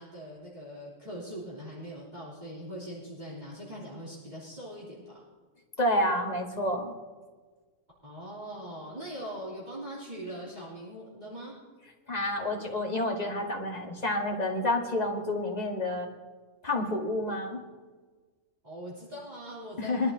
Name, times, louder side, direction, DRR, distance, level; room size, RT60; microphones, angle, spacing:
voice 1, 0.0-5.2 8.0-11.6 18.6-20.1, equal, 35° right, -8 dB, 3.4 m, -41 dB
voice 2, 5.8-6.9 12.1-16.1 16.6-17.6 19.8-20.1, left 1 dB, 30° left, 0 dB, 1.7 m, -29 dB
22.0 x 11.5 x 2.8 m, 1.4 s
omnidirectional pair, 1.3 m